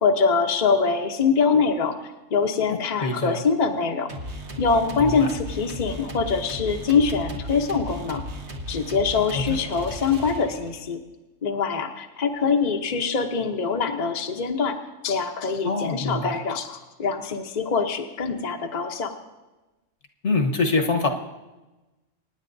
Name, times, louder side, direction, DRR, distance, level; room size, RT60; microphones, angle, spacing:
voice 1, 0.0-4.1 4.6-8.2 8.7-11.0 11.4-14.8 15.0-19.1, left 5 dB, 40° left, 3 dB, 0.8 m, -24 dB
voice 2, 2.7-3.4 5.0-5.3 9.3-9.6 15.6-16.3 20.2-21.1, left 3 dB, 65° left, 4 dB, 1.5 m, -25 dB
sound 1, 4.1-10.8, equal, 60° right, 1.5 m, -36 dB
25.0 x 10.0 x 2.6 m, 1.1 s
omnidirectional pair, 1.3 m